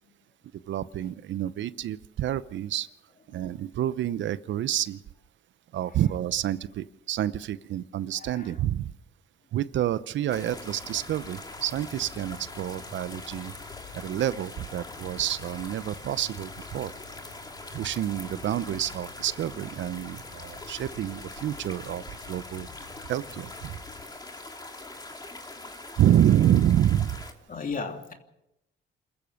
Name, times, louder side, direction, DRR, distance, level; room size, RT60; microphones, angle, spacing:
voice 1, 0.7-2.9 3.3-5.0 5.7-8.9 9.5-13.5 13.9-16.9 17.7-22.7 23.1-23.8 26.0-27.2, right 11 dB, 70° right, 16 dB, 0.8 m, -28 dB
voice 2, 8.1-8.6 25.5-25.7 27.5-28.1, left 4 dB, 45° left, 4 dB, 3.0 m, -37 dB
sound 1, 10.3-24.0, left 6 dB, 80° left, 5.1 m, -50 dB
sound 2, 10.3-27.3, left 2 dB, 20° left, 2.7 m, -43 dB
28.0 x 14.5 x 6.4 m, 0.88 s
cardioid pair, 90°, 20 cm